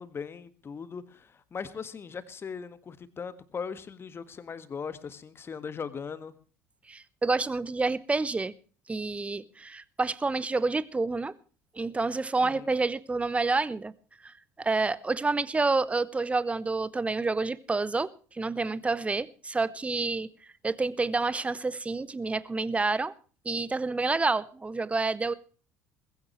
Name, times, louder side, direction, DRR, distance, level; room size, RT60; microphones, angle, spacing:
voice 1, 0.0-6.3 12.4-12.7, left 6 dB, 30° left, 1.7 m, -39 dB
voice 2, 6.9-8.5 8.9-11.3 11.7-13.9 14.2-20.3 20.6-23.1 23.4-25.3, right 3 dB, 15° right, 1.0 m, -28 dB
20.5 x 15.5 x 3.2 m
figure-of-eight pair, 60°, 8 cm